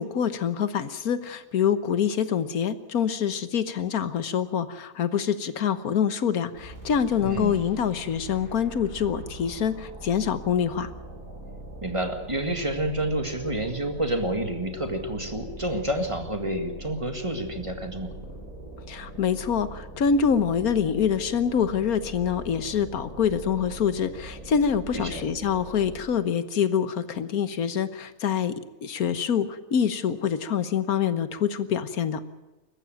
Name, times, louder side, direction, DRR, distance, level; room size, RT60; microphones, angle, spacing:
voice 1, 0.0-10.9 18.9-32.2, left 7 dB, 80° left, 13 dB, 1.6 m, -25 dB
sound 1, 6.5-26.2, right 1 dB, 65° right, 7.7 m, -42 dB
voice 2, 7.2-7.6 11.8-18.1 24.9-25.2, right 1 dB, 20° right, 6 dB, 2.0 m, -29 dB
21.0 x 14.5 x 9.0 m, 1.1 s
omnidirectional pair, 1.5 m